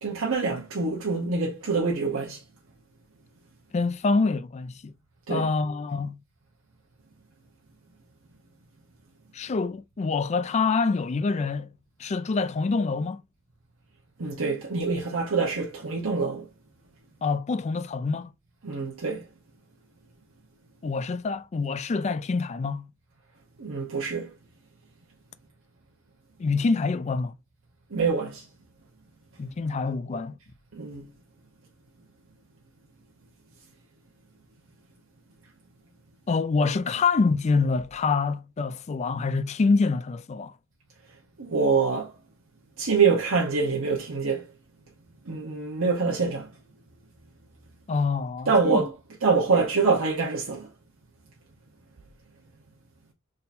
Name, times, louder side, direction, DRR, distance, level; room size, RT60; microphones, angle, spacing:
voice 1, 0.0-2.4 5.3-5.5 14.2-16.5 18.6-19.3 23.6-24.3 27.9-28.4 30.7-31.1 41.4-42.1 42.8-44.4 45.3-46.5 48.5-48.9 49.2-50.7, right 4 dB, 80° right, 0.9 m, -25 dB
voice 2, 3.7-4.9 5.3-6.2 9.3-11.7 12.0-13.2 17.2-18.3 20.8-22.9 26.4-27.3 29.4-30.4 36.3-40.5 47.9-48.8, left 4 dB, 35° left, 0.3 m, -26 dB
3.8 x 2.6 x 4.1 m
head